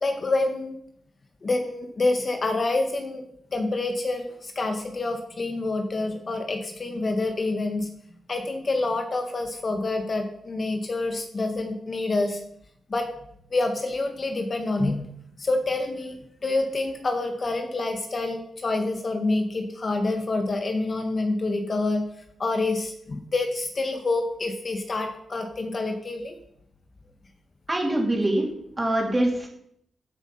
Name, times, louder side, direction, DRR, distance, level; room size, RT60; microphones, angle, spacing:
voice 1, 0.0-0.8 1.4-3.2 3.5-7.9 8.3-12.4 12.9-13.1 13.5-15.0 15.4-22.0 22.4-26.4, left 2 dB, 40° left, 5 dB, 1.5 m, -27 dB
voice 2, 27.7-28.5 28.8-29.5, right 1 dB, 20° right, 0 dB, 3.7 m, -23 dB
15.5 x 8.3 x 5.6 m, 0.72 s
wide cardioid pair, 120°, 0 cm